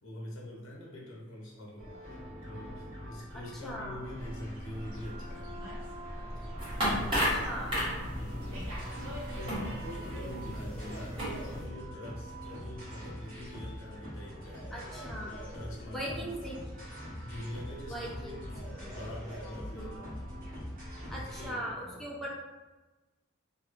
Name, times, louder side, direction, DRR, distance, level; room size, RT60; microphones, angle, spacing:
voice 1, 0.0-5.6 6.4-6.6 7.0-7.1 8.2-8.7 9.3-16.4 17.2-18.5 18.9-20.2 21.1-22.1, left 1 dB, 65° left, -3 dB, 0.7 m, -44 dB
sound 1, 1.8-21.5, equal, 45° right, 1.3 m, -43 dB
voice 2, 3.6-4.0 7.1-7.8 10.0-10.4 14.7-15.3 15.9-16.6 17.9-18.4 18.7-19.0 19.7-20.0 21.1-22.3, right 1 dB, ahead, -5 dB, 0.5 m, -40 dB
Slam, 4.2-10.2, equal, 80° right, 0.7 m, -45 dB
sound 2, 6.6-11.6, equal, 25° right, 1.0 m, -34 dB
2.7 x 2.4 x 2.5 m, 1.2 s
head